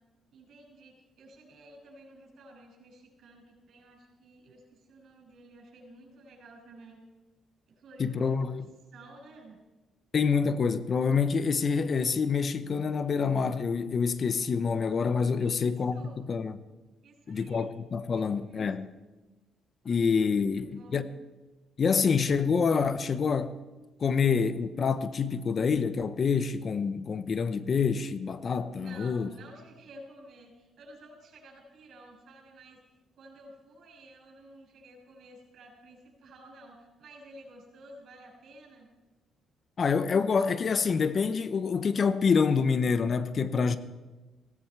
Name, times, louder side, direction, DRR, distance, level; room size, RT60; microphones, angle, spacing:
voice 1, 0.3-7.0 7.7-8.5 8.9-9.6 15.4-16.2 17.0-17.7 18.1-18.7 20.3-21.1 28.7-32.8 33.1-38.9, right 1 dB, 65° right, 6.6 m, -52 dB
voice 2, 8.0-8.7 10.1-16.6 17.3-18.9 19.8-21.0 21.8-23.5 24.0-29.3 39.8-43.8, left 5 dB, 45° left, 0.8 m, -27 dB
17.5 x 16.0 x 4.6 m
cardioid pair, 90°, 0 cm